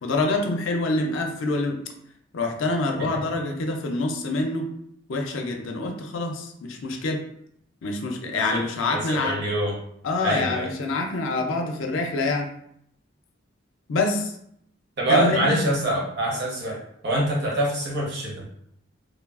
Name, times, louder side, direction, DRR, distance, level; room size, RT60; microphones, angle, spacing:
voice 1, 0.0-1.8 2.3-4.7 5.1-7.2 7.8-9.4 10.0-12.5 13.9-14.3 15.1-15.6, left 2 dB, 80° left, 3 dB, 0.4 m, -26 dB
voice 2, 8.9-9.8 10.2-10.7 15.0-18.5, right 1 dB, 60° right, -3 dB, 0.8 m, -25 dB
3.0 x 2.2 x 2.4 m, 0.72 s
head